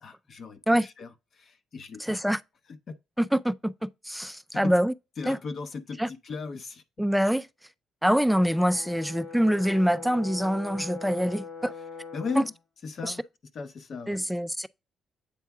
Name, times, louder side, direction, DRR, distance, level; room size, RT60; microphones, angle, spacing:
voice 1, 0.0-2.2 2.7-2.9 4.5-4.7 5.2-6.8 12.1-12.5 12.8-13.2 13.5-14.2, left 4 dB, 55° left, 0.7 m, -37 dB
voice 2, 2.0-2.4 3.2-4.9 5.3-5.4 6.0-6.1 7.0-7.5 8.0-11.7 12.4-12.5 13.0-13.1 14.1-14.7, equal, ahead, 0.3 m, -25 dB
Brass instrument, 8.3-12.6, left 5 dB, 80° left, 1.2 m, -42 dB
8.4 x 3.6 x 3.5 m
cardioid pair, 90°, 0 cm